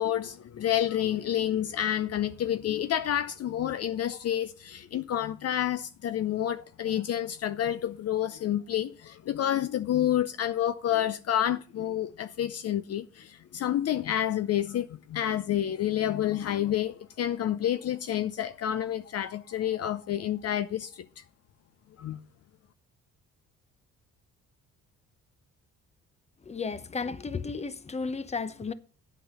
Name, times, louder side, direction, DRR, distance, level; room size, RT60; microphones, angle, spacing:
voice 1, 0.0-21.2 22.0-22.2, left 11 dB, 55° left, 0.6 m, -29 dB
voice 2, 26.5-28.7, left 4 dB, 20° left, 0.8 m, -33 dB
8.5 x 6.0 x 6.7 m
cardioid pair, 90°, 30 cm